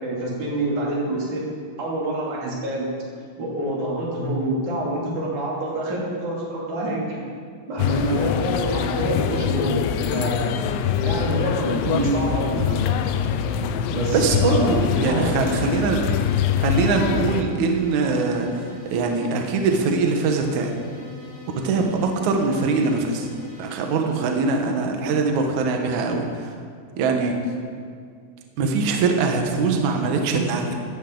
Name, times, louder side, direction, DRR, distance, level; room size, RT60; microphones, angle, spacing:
voice 1, 0.0-1.4 1.8-2.9 3.4-7.2 7.6-9.8 10.1-10.4 11.0-12.9 13.9-14.7 15.1-15.3, right 1 dB, 45° right, -5 dB, 3.8 m, -27 dB
sound 1, 7.8-17.4, left 8 dB, 85° left, 2.8 m, -24 dB
sound 2, 9.3-24.7, left 1 dB, 25° left, 2.5 m, -42 dB
voice 2, 11.8-12.3 14.1-16.0 16.6-20.7 21.6-23.3 23.6-26.5 27.0-27.4 28.6-30.7, right 4 dB, 90° right, 3 dB, 1.6 m, -22 dB
16.5 x 13.0 x 3.9 m, 2.1 s
omnidirectional pair, 5.5 m